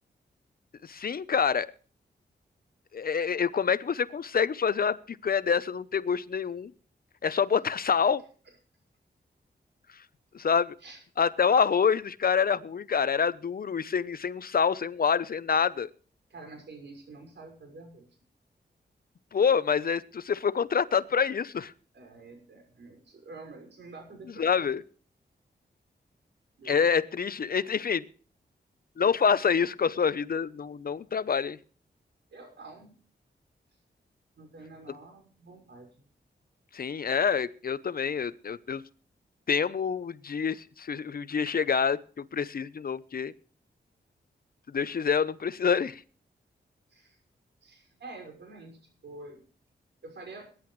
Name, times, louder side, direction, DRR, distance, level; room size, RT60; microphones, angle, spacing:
voice 1, 0.8-1.7 2.9-6.7 7.2-8.2 10.3-10.7 11.2-15.9 19.3-21.7 24.4-24.8 26.7-28.0 29.0-31.6 36.7-38.8 39.5-43.3 44.7-46.0, left 6 dB, 55° left, 15 dB, 0.9 m, -27 dB
voice 2, 16.3-18.1 21.9-24.6 26.6-27.0 32.3-32.9 34.4-36.0 46.9-47.2 47.6-49.4 50.0-50.5, right 3 dB, 85° right, 3 dB, 6.0 m, -47 dB
22.0 x 10.5 x 3.2 m, 0.42 s
wide cardioid pair, 100°, 18 cm